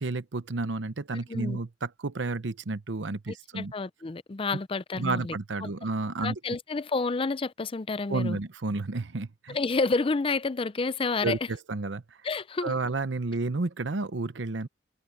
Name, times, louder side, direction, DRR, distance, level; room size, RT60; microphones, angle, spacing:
voice 1, 0.0-3.7 5.0-6.4 8.1-9.6 11.2-12.2 12.6-14.7, right 3 dB, 85° right, 0.8 m, -31 dB
voice 2, 1.3-1.6 3.3-5.4 5.6-5.7 6.2-8.4 9.5-11.4 12.2-12.7, left 3 dB, 30° left, 0.5 m, -29 dB
head